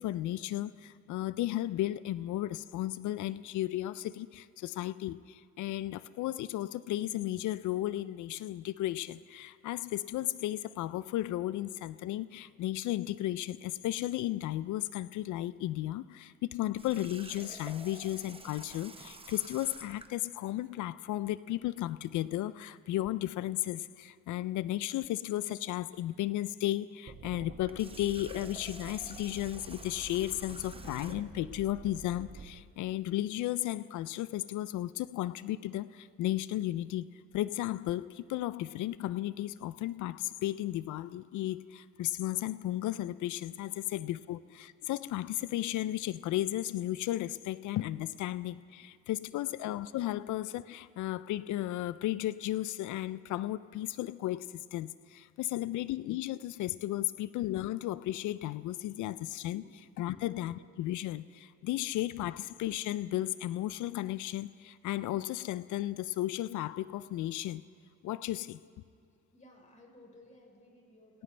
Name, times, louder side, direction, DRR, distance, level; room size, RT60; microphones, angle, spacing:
voice 1, 0.0-67.6 68.0-68.6, left 14 dB, 80° left, 17 dB, 0.5 m, -34 dB
Water tap faucet, 16.8-20.2 27.6-31.4, right 3 dB, 20° right, 0.9 m, -50 dB
sound 1, 27.1-32.5, right 4 dB, 40° right, 2.0 m, -48 dB
voice 2, 49.0-49.4 55.6-55.7 59.6-60.3 61.6-61.7 69.3-71.2, left 1 dB, 25° left, 0 dB, 4.4 m, -59 dB
24.0 x 16.5 x 3.3 m, 2.5 s
cardioid pair, 90°, 30 cm